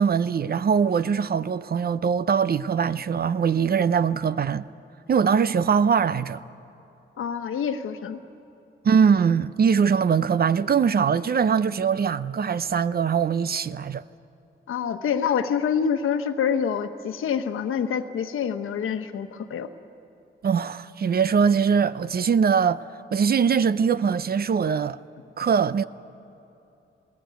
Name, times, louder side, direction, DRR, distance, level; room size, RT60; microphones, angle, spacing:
voice 1, 0.0-4.6 5.1-6.4 8.8-14.0 20.4-22.9 23.1-25.0 25.4-25.8, right 6 dB, 50° right, 0.6 m, -22 dB
voice 2, 7.2-8.2 14.7-19.7, left 7 dB, 80° left, 1.2 m, -26 dB
20.0 x 19.0 x 9.3 m
cardioid pair, 75°, 21 cm